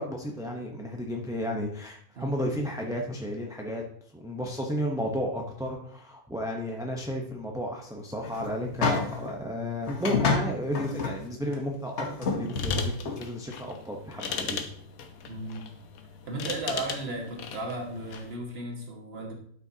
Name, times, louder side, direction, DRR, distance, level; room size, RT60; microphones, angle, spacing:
voice 1, 0.0-3.8 4.1-14.7, equal, 5° right, 0 dB, 0.6 m, -33 dB
sound 1, 8.2-9.3 9.9-11.2 11.5-11.6 12.0-13.2, left 4 dB, 55° left, 1.3 m, -28 dB
sound 2, 12.4-18.4, left 6 dB, 75° left, 1.3 m, -38 dB
voice 2, 15.3-15.6 16.3-19.3, right 2 dB, 45° right, 0 dB, 1.8 m, -35 dB
11.5 x 6.0 x 2.8 m, 0.63 s
omnidirectional pair, 1.5 m